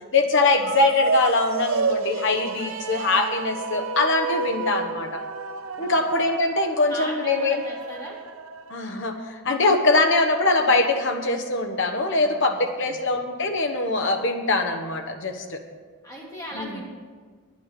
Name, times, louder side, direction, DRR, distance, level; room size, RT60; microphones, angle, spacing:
voice 1, 0.1-5.2 5.8-7.6 8.7-15.6 16.5-16.7, left 3 dB, 55° left, 5 dB, 1.2 m, -22 dB
sound 1, 0.5-9.0, right 4 dB, 60° right, 0.7 m, -30 dB
voice 2, 6.9-8.2 12.2-13.1 16.0-16.8, equal, 15° left, -4 dB, 2.8 m, -38 dB
9.5 x 9.4 x 6.8 m, 1.5 s
head